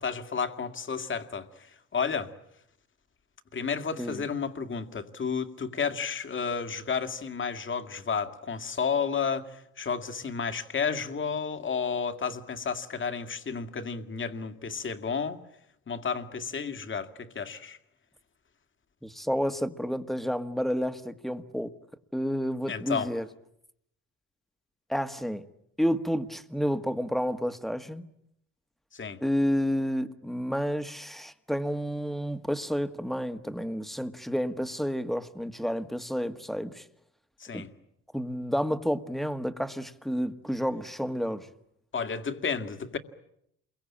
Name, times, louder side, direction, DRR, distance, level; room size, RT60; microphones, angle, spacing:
voice 1, 0.0-2.3 3.5-15.4 15.9-17.8 22.7-23.1 28.9-29.2 37.4-37.7 41.9-43.0, left 6 dB, 40° left, 2.3 m, -32 dB
voice 2, 19.0-21.7 22.1-23.3 24.9-25.5 25.8-28.1 29.2-36.8 37.5-37.6 38.1-41.5, equal, ahead, 1.7 m, -30 dB
28.5 x 23.0 x 8.8 m
cardioid pair, 90°, 30 cm